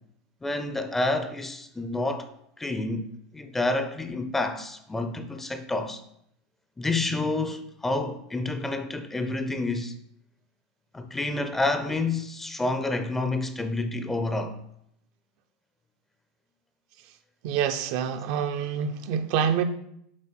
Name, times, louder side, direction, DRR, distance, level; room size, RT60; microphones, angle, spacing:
voice 1, 0.4-2.3 2.6-6.0 6.8-9.9 10.9-14.6, left 2 dB, 10° left, 0.5 m, -29 dB
voice 2, 17.4-19.6, right 8 dB, 60° right, 0.6 m, -26 dB
7.5 x 4.5 x 4.4 m
supercardioid pair, 130°, 3 cm